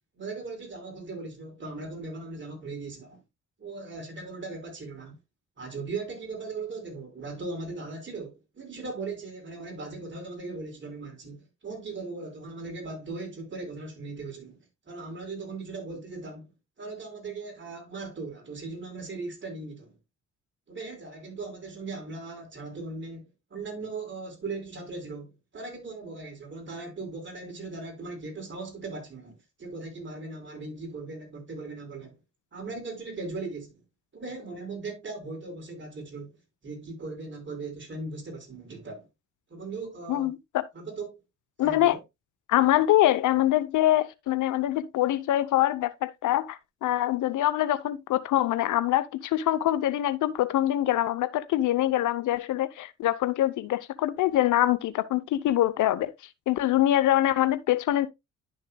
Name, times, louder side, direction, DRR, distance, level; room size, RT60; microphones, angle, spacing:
voice 1, 0.2-3.2 3.6-5.2 5.6-14.6 14.9-16.5 16.8-20.0 20.7-32.2 32.5-33.8 34.1-36.3 36.6-39.1 39.5-40.3 40.7-41.2 41.6-42.0, right 3 dB, 40° right, 5.3 m, -38 dB
voice 2, 40.1-40.7 41.6-42.0 42.5-56.1 56.5-58.1, left 13 dB, 80° left, 0.8 m, -24 dB
11.5 x 6.5 x 2.2 m
cardioid pair, 90°, 30 cm